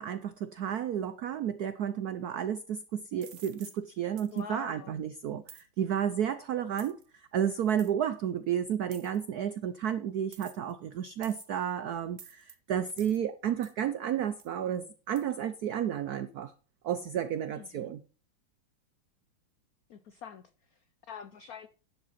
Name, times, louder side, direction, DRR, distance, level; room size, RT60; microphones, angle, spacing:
voice 1, 0.0-16.5 16.8-18.0, right 9 dB, 80° right, 0.8 m, -32 dB
sound 1, 3.2-3.8 4.2-4.4 5.5-5.7 6.8-7.0 7.8-7.9 8.9-9.2 10.3-10.7 11.2-11.6 12.2-12.5 13.0-13.2 13.6-13.8 14.4-14.5 15.2-15.3, right 7 dB, 45° right, 1.0 m, -51 dB
voice 2, 4.3-5.0 17.6-17.9 19.9-20.4 20.7-21.7, left 7 dB, 85° left, 0.8 m, -45 dB
10.5 x 7.6 x 5.7 m
omnidirectional pair, 2.4 m